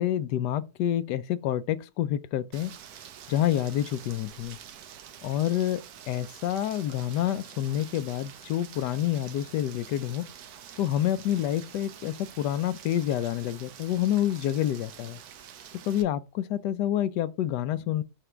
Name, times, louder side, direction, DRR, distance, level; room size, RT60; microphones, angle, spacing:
voice 1, 0.0-2.7 3.3-4.6 5.2-10.3 10.8-15.2 15.8-18.0, left 12 dB, 75° left, 1.2 m, -28 dB
Rain, 2.5-16.0, right 9 dB, 65° right, 1.1 m, -47 dB
5.9 x 3.3 x 4.9 m
omnidirectional pair, 1.9 m